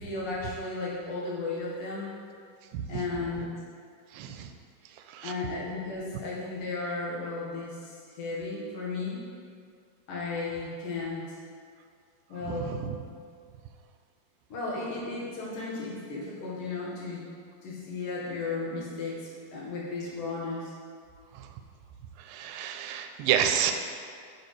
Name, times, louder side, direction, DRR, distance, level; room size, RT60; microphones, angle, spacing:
voice 1, 0.0-2.1 2.9-3.5 5.2-9.2 10.1-11.4 12.3-12.8 14.5-17.3 17.6-20.7, left 3 dB, 75° left, -5 dB, 3.0 m, -34 dB
voice 2, 2.7-3.0 4.1-4.5 4.9-5.3 12.5-13.0 21.3-21.5 22.2-23.7, right 9 dB, 90° right, 6 dB, 2.3 m, -30 dB
8.0 x 6.7 x 3.2 m, 2.2 s
omnidirectional pair, 4.0 m